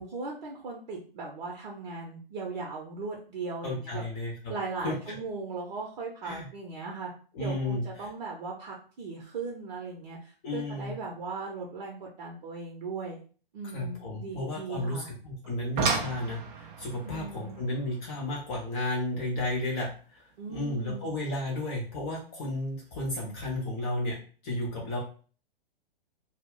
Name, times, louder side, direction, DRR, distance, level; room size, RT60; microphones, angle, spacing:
voice 1, 0.0-4.0 4.5-7.1 7.4-13.2 13.5-15.1 17.0-17.6 20.4-21.1, right 4 dB, 50° right, -1 dB, 0.7 m, -38 dB
voice 2, 3.6-4.5 4.8-5.2 6.2-6.5 7.3-7.8 10.4-10.9 13.7-24.2 24.4-25.0, left 1 dB, 30° left, -3 dB, 0.7 m, -33 dB
sound 1, 15.4-20.5 21.9-22.0 22.6-22.8 23.1-23.2, right 5 dB, 15° right, 0.3 m, -35 dB
2.3 x 2.0 x 3.6 m, 0.40 s
figure-of-eight pair, 120°, 29 cm